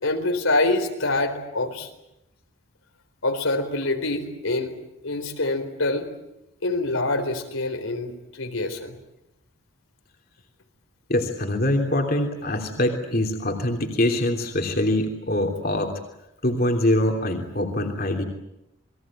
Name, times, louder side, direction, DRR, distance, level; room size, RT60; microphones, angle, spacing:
voice 1, 0.0-1.9 3.2-4.7 5.0-6.1 6.6-8.9, left 2 dB, 85° left, 4 dB, 4.2 m, -25 dB
voice 2, 11.1-15.9 16.4-18.2, left 1 dB, 45° left, 2 dB, 3.2 m, -24 dB
29.0 x 21.5 x 8.8 m, 0.87 s
head